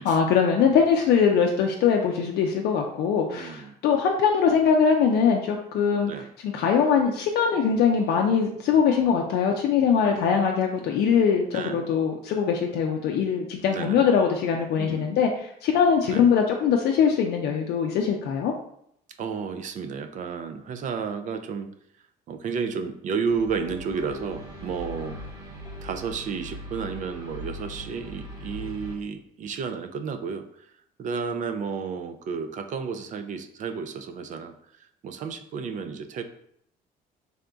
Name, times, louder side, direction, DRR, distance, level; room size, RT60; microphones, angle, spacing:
voice 1, 0.0-6.1 6.4-18.5, left 6 dB, 75° left, 1 dB, 0.5 m, -22 dB
voice 2, 3.3-3.7 6.0-6.3 10.1-10.4 11.5-11.8 13.7-14.1 14.7-15.1 16.0-16.3 19.2-21.7 22.3-25.2 25.8-30.7 31.0-36.2, right 5 dB, 50° right, 8 dB, 0.4 m, -32 dB
sound 1, 23.3-28.9, equal, 20° right, 1.0 m, -40 dB
3.5 x 2.3 x 3.8 m, 0.70 s
cardioid pair, 110°, 17 cm